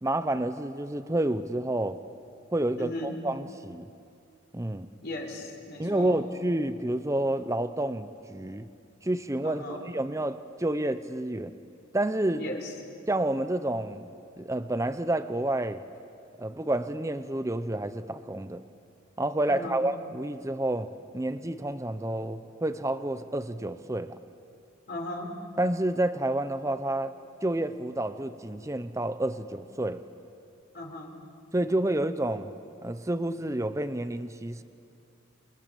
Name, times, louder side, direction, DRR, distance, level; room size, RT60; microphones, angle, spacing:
voice 1, 0.0-2.0 2.5-3.9 4.5-4.9 5.8-8.7 9.0-11.6 11.9-12.4 13.1-14.1 14.4-15.8 16.4-18.6 19.2-24.2 25.6-27.1 27.4-30.0 31.5-32.5 32.8-34.6, right 1 dB, 15° right, 11 dB, 0.7 m, -29 dB
voice 2, 2.7-3.2 5.0-6.2 9.4-9.8 12.4-12.7 19.5-19.8 24.9-25.3 30.7-31.1, left 1 dB, 55° left, 1 dB, 4.0 m, -37 dB
28.5 x 24.5 x 7.0 m, 2.4 s
head